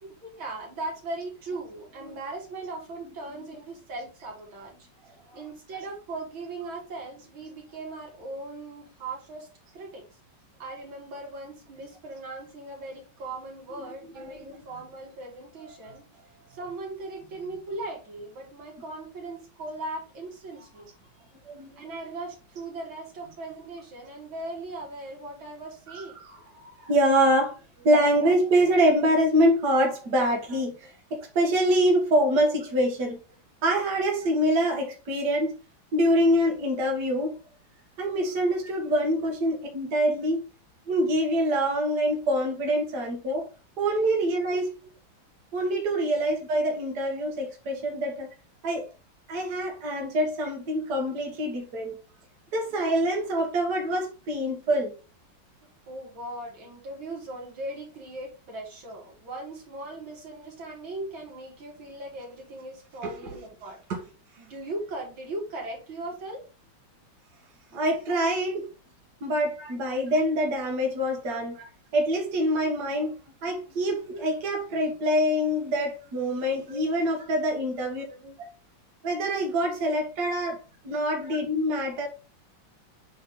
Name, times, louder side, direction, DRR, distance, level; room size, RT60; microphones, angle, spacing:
voice 1, 0.0-4.9 5.3-9.5 9.7-10.1 10.6-16.1 16.5-20.9 21.8-26.2 28.2-28.4 30.5-30.9 32.4-32.5 38.6-38.7 44.8-44.9 55.6-63.8 64.4-66.4 69.6-69.7 71.3-71.7 72.6-72.7 74.1-74.2 76.4-76.9 77.8-78.3 81.2-81.4, right 2 dB, 90° right, 3.1 m, -39 dB
voice 2, 26.6-33.2 33.6-35.5 35.9-37.3 38.0-40.4 40.9-43.5 43.8-44.7 45.5-48.3 48.6-48.9 49.3-52.0 52.5-54.9 63.0-63.4 63.9-64.0 67.7-68.7 69.2-71.6 71.9-73.1 73.4-78.0 78.4-78.5 79.0-80.6 80.8-82.1, equal, 60° right, 2.0 m, -25 dB
8.0 x 3.6 x 3.8 m
omnidirectional pair, 2.1 m